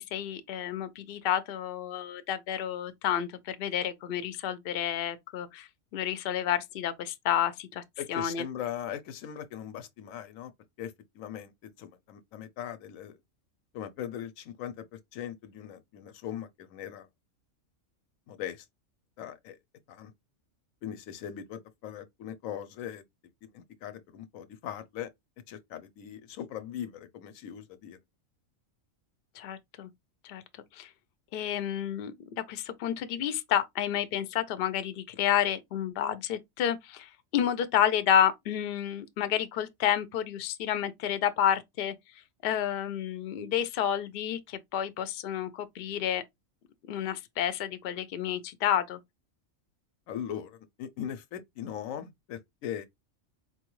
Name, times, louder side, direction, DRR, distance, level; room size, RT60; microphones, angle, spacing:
voice 1, 0.0-7.8 8.1-8.4 29.4-29.9 30.2-30.4 30.7-30.9 31.3-41.9 42.4-46.2 46.9-49.0, left 10 dB, 60° left, 0.6 m, -30 dB
voice 2, 8.0-10.5 10.8-13.2 13.7-17.1 18.3-18.7 19.2-19.6 19.9-20.1 20.8-23.0 23.4-25.1 25.5-28.0 50.1-52.9, left 10 dB, 85° left, 1.0 m, -40 dB
4.4 x 2.3 x 3.0 m
omnidirectional pair, 1.4 m